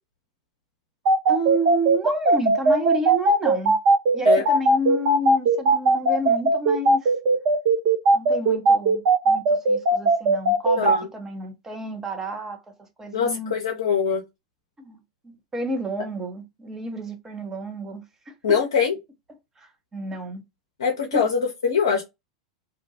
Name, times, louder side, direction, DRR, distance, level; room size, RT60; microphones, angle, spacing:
sound 1, 1.0-11.0, right 2 dB, 55° right, 0.8 m, -18 dB
voice 1, 1.3-3.8 4.1-7.1 8.1-12.6 13.0-13.5 14.8-15.0 15.2-18.3 19.6-20.4 21.1-21.3, right 1 dB, 15° right, 0.8 m, -30 dB
voice 2, 10.8-11.1 13.1-14.2 18.4-18.9 20.8-22.0, left 6 dB, 75° left, 0.6 m, -23 dB
2.5 x 2.2 x 2.7 m
hypercardioid pair, 90°, 3 cm